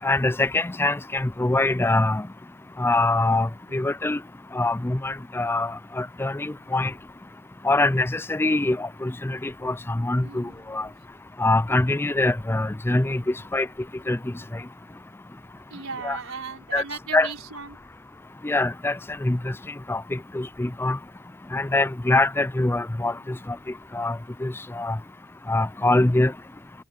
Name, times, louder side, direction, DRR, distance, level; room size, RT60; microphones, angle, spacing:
voice 1, 0.0-2.2 2.8-4.2 4.5-6.9 7.6-10.9 11.4-13.2 13.5-13.7 14.1-14.2 16.0-16.2 16.7-16.8 17.1-17.3 18.4-19.5 19.9-21.0 21.5-23.4 23.9-25.0 25.5-26.3, left 2 dB, 10° left, 0.4 m, -24 dB
voice 2, 10.2-10.9 13.2-13.5 15.7-17.9 23.1-23.3, right 5 dB, 90° right, 4.2 m, -38 dB
head